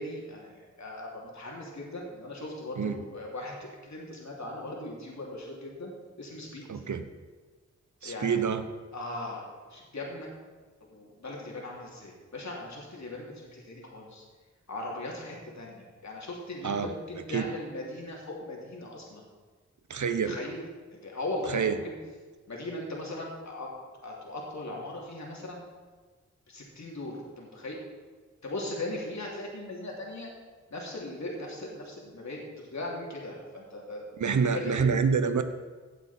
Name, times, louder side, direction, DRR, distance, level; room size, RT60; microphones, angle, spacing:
voice 1, 0.0-5.9 6.2-6.7 8.0-8.4 8.9-9.4 9.7-10.3 10.8-14.2 14.7-19.2 20.1-20.6 20.9-22.0 22.5-23.7 24.0-25.6 26.5-27.8 28.4-30.3 30.7-34.0 34.4-34.9, left 2 dB, 70° left, -2 dB, 3.0 m, -39 dB
voice 2, 6.7-7.0 8.0-8.6 16.6-16.9 17.3-17.5 19.9-20.4 21.5-21.8 34.2-35.4, right 6 dB, 75° right, 10 dB, 1.0 m, -27 dB
16.5 x 8.3 x 4.4 m, 1.4 s
wide cardioid pair, 60°, 30 cm